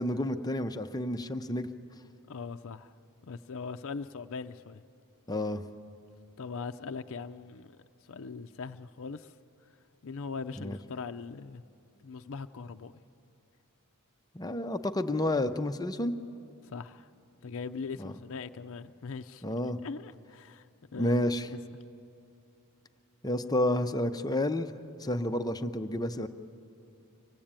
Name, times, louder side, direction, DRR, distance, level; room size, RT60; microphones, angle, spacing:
voice 1, 0.0-1.7 5.3-5.6 10.6-10.8 14.3-16.1 18.0-18.1 19.4-19.8 21.0-21.5 23.2-24.7 25.0-26.3, left 1 dB, 15° left, 8 dB, 0.6 m, -30 dB
voice 2, 2.3-2.9 3.2-4.8 6.4-7.7 8.1-9.3 10.0-11.6 12.0-13.0 16.6-17.1 17.4-19.4 19.8-20.7 20.9-21.2 21.5-21.6, left 5 dB, 60° left, 7 dB, 0.5 m, -40 dB
25.0 x 17.0 x 8.8 m, 2.6 s
head